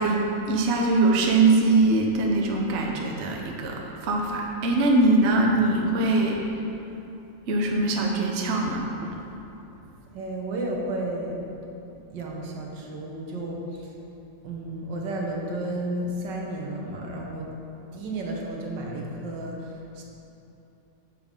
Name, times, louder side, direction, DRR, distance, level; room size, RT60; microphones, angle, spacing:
voice 1, 0.0-6.4 7.5-9.1, right 2 dB, 50° right, 0 dB, 0.9 m, -22 dB
voice 2, 10.1-11.4 12.1-13.9 14.4-17.5 17.9-20.0, right 1 dB, 75° right, -1 dB, 1.7 m, -32 dB
8.7 x 7.5 x 3.7 m, 2.9 s
omnidirectional pair, 2.0 m